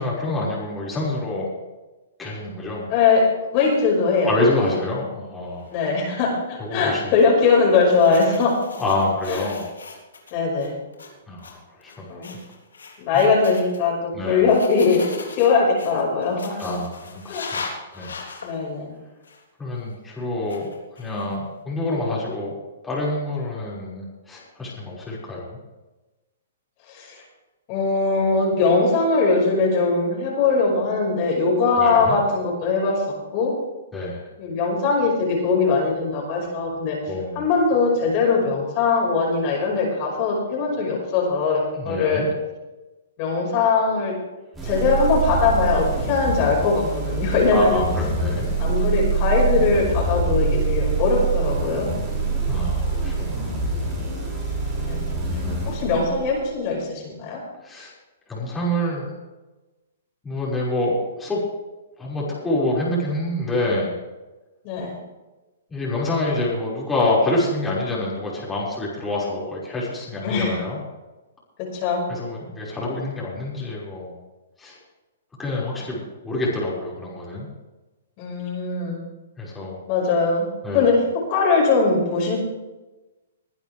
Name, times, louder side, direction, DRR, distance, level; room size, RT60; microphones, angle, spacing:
voice 1, 0.0-1.5 2.2-2.9 4.2-5.7 6.6-7.0 8.8-9.7 11.3-12.2 13.1-13.2 14.1-14.4 16.6-17.7 17.9-18.2 19.6-20.7 21.0-22.5 22.8-25.6 31.8-32.2 33.9-34.2 37.1-37.4 41.7-42.3 47.5-48.5 52.5-53.6 55.4-55.7 57.6-57.9 58.3-59.1 60.2-61.4 62.0-63.9 65.7-70.8 72.1-74.1 74.6-74.8 75.4-77.5 79.4-79.8 80.6-80.9, left 2 dB, 10° left, -7 dB, 5.8 m, -27 dB
voice 2, 2.9-3.2 3.5-4.3 5.7-8.5 9.3-9.4 10.3-10.7 12.1-12.3 13.0-15.1 15.3-16.6 17.3-17.5 18.4-18.9 26.9-27.2 27.7-33.0 33.3-33.5 34.4-37.0 37.4-42.2 43.2-44.1 44.6-47.8 48.6-52.0 54.8-55.1 55.7-57.4 64.6-64.9 70.2-70.6 71.7-72.0 78.2-79.0 79.9-80.5 80.7-81.0 81.3-82.4, left 4 dB, 40° left, -2 dB, 5.6 m, -21 dB
sound 1, 3.5-3.8 4.2-4.9 5.6-5.8 6.8-7.0 7.7-10.3 10.6-11.1 11.4-11.5 11.8-12.0 12.2-13.8 14.5-18.6 19.2-19.4 20.5-21.4, left 4 dB, 90° left, 3.5 m, -39 dB
sound 2, 44.5-56.5, right 3 dB, 15° right, 6.2 m, -25 dB
22.0 x 10.5 x 3.5 m, 1.1 s
hypercardioid pair, 135°, 0 cm